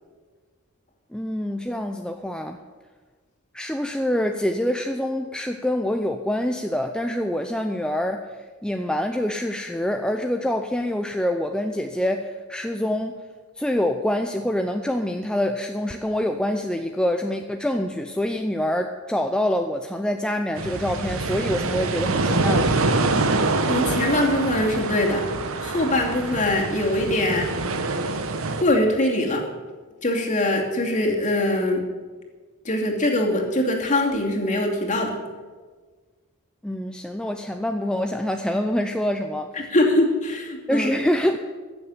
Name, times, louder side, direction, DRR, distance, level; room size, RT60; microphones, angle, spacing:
voice 1, 1.1-2.6 3.5-13.2 13.6-22.7 36.6-39.5 40.7-41.5, left 1 dB, 5° left, 5 dB, 0.5 m, -26 dB
sound 1, 20.6-28.6, right 3 dB, 65° right, 1.2 m, -25 dB
voice 2, 23.6-25.3 25.6-27.6 28.6-29.4 30.0-31.8 32.6-35.2 39.7-40.9, left 1 dB, 35° left, 0 dB, 2.7 m, -22 dB
15.5 x 7.2 x 9.9 m, 1.4 s
head